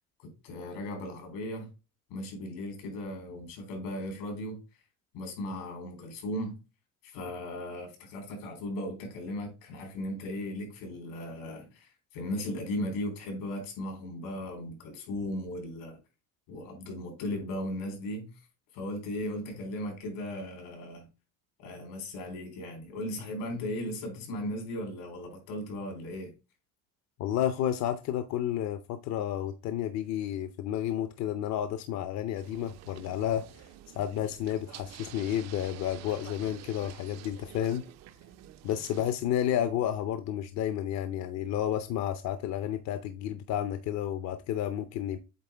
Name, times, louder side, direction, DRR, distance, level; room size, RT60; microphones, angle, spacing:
voice 1, 0.2-1.7 2.1-4.6 5.1-6.6 7.0-16.0 16.5-18.3 18.7-21.1 21.6-26.3, left 1 dB, 90° left, 3.8 m, -37 dB
voice 2, 27.2-33.6 33.9-37.8 38.6-45.2, left 10 dB, 55° left, 0.6 m, -31 dB
sound 1, 32.3-39.1, right 13 dB, 55° right, 0.6 m, -49 dB
8.1 x 3.7 x 3.4 m
cardioid pair, 165°, 33 cm